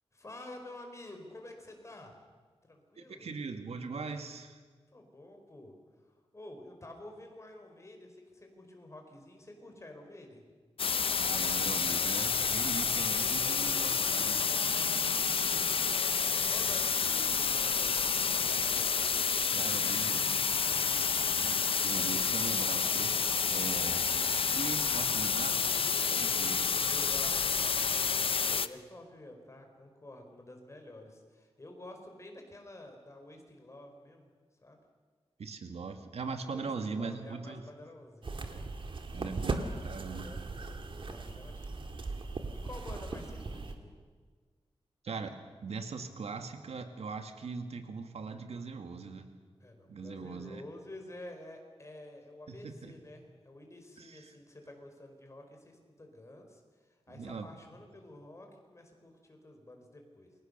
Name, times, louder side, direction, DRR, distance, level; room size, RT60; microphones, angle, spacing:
voice 1, 0.1-2.2 2.6-3.3 4.9-5.8 6.1-10.4 13.4-18.3 20.6-20.9 26.8-34.3 34.6-34.8 36.5-39.2 40.1-42.0 42.2-43.9 49.6-60.3, left 1 dB, 30° left, 3 dB, 4.8 m, -50 dB
voice 2, 3.0-4.6 11.2-14.4 19.5-20.3 21.3-23.2 23.5-24.0 24.3-26.7 35.4-37.6 39.1-40.3 45.0-49.3 49.9-50.6 52.5-52.9 54.0-54.3 57.1-57.5, right 4 dB, 85° right, 7 dB, 2.2 m, -41 dB
sound 1, 10.8-28.7, left 6 dB, 60° left, 0.8 m, -29 dB
sound 2, 38.2-43.7, right 3 dB, 55° right, 2.2 m, -38 dB
28.5 x 23.0 x 6.9 m, 1.5 s
wide cardioid pair, 135°, 10 cm